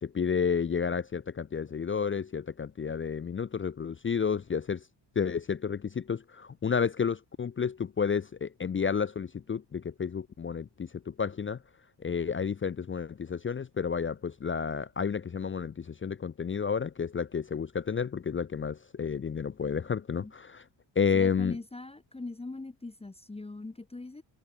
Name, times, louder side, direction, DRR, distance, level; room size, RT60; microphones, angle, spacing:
voice 1, 0.0-4.8 5.2-11.6 12.0-20.6 21.0-21.6, left 6 dB, 30° left, 0.6 m, -31 dB
voice 2, 21.1-24.2, left 2 dB, 15° left, 1.3 m, -41 dB
wide cardioid pair, 135°, 44 cm